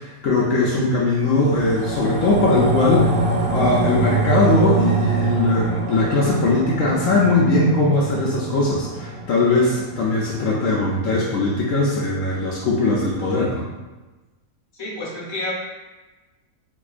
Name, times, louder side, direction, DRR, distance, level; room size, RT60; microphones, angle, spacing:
voice 1, 0.0-3.1 3.5-13.7, left 2 dB, 70° left, -5 dB, 0.9 m, -20 dB
sound 1, 1.2-11.8 12.2-12.3, right 3 dB, 90° right, 1.1 m, -25 dB
voice 2, 14.8-15.5, left 2 dB, 25° left, -6 dB, 0.7 m, -29 dB
4.5 x 2.4 x 2.4 m, 1.2 s
omnidirectional pair, 1.6 m